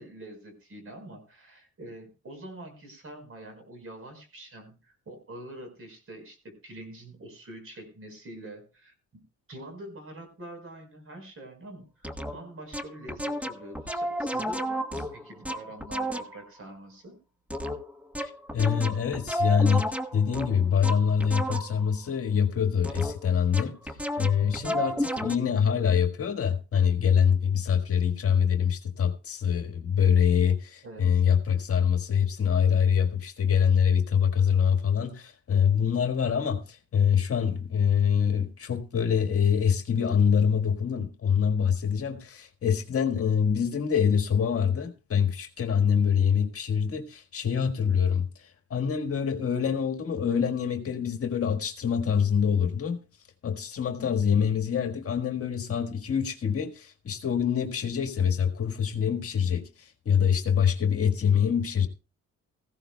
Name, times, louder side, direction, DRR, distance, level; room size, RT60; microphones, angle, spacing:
voice 1, 0.0-9.2 9.5-17.2 24.4-24.8 30.8-31.2, right 1 dB, 45° right, 4.8 m, -45 dB
sound 1, 12.0-12.3 12.7-16.4 17.5-21.9 22.8-23.3 23.5-25.4, equal, 5° right, 1.1 m, -32 dB
voice 2, 18.2-23.7 24.2-53.0 53.4-61.9, left 7 dB, 50° left, 1.6 m, -25 dB
17.0 x 15.5 x 2.3 m
cardioid pair, 90°, 30 cm